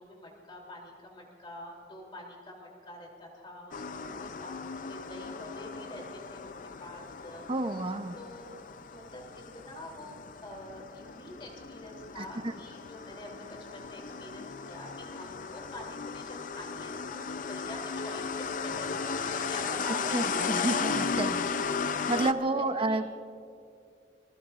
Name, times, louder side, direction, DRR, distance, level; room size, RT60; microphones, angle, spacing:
voice 1, 0.0-4.6 4.9-8.6 8.9-20.8 22.4-23.2, left 1 dB, 30° left, -1 dB, 3.1 m, -46 dB
Solex im offenen Parkhaus, 3.7-22.3, left 5 dB, 50° left, 0.5 m, -36 dB
voice 2, 7.5-8.2 12.2-12.3 20.1-21.5 22.1-23.0, right 2 dB, 30° right, 9 dB, 0.7 m, -30 dB
26.5 x 21.0 x 2.5 m, 2.4 s
head